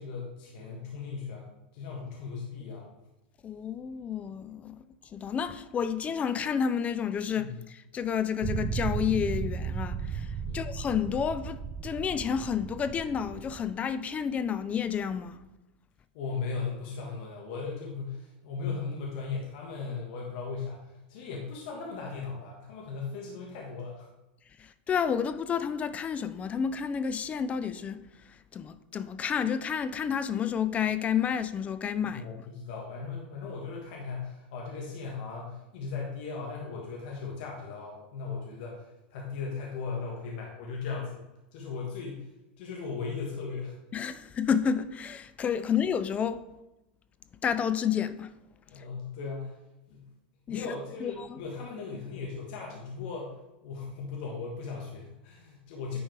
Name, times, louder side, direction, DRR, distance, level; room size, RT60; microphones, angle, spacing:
voice 1, 0.0-2.9 7.3-7.6 10.4-10.8 16.1-24.1 32.0-41.2 41.5-42.3 42.6-43.8 48.7-49.6 49.9-50.1 50.5-56.0, left 4 dB, 70° left, 1.5 m, -37 dB
voice 2, 3.4-4.8 5.1-7.5 7.9-15.4 24.9-28.0 28.5-32.3 43.9-46.4 47.4-48.3 50.5-50.7 51.0-51.3, left 7 dB, 25° left, 0.5 m, -30 dB
sound 1, 8.4-13.7, right 6 dB, 30° right, 0.5 m, -35 dB
9.8 x 4.4 x 3.4 m
supercardioid pair, 120°, 5 cm